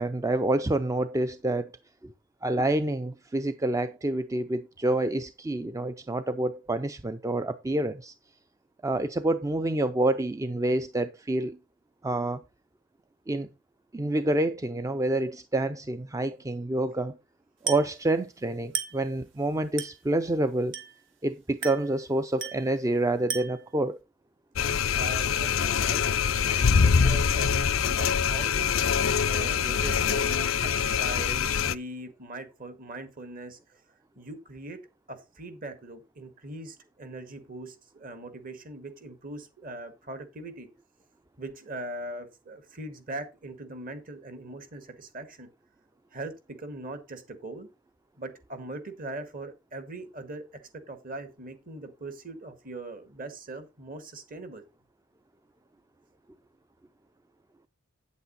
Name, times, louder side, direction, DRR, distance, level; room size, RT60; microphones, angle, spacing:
voice 1, 0.0-1.7 2.0-2.1 2.4-8.1 8.8-11.6 12.0-12.4 13.3-13.5 13.9-17.2 17.6-20.7 21.2-24.0, right 2 dB, 15° right, 0.5 m, -28 dB
Glass, 17.7-18.0 18.7-19.1 19.8-20.1 20.7-21.1 21.6-22.0 22.4-22.7 23.3-23.7, right 7 dB, 70° right, 2.3 m, -35 dB
sound 1, 24.6-31.7, left 6 dB, 90° left, 0.6 m, -24 dB
voice 2, 25.0-28.8 29.3-33.8 34.2-34.8 35.1-40.7 41.4-45.5 46.1-47.7 48.2-50.5 50.7-54.6, right 2 dB, 45° right, 1.9 m, -40 dB
8.6 x 8.2 x 4.1 m
head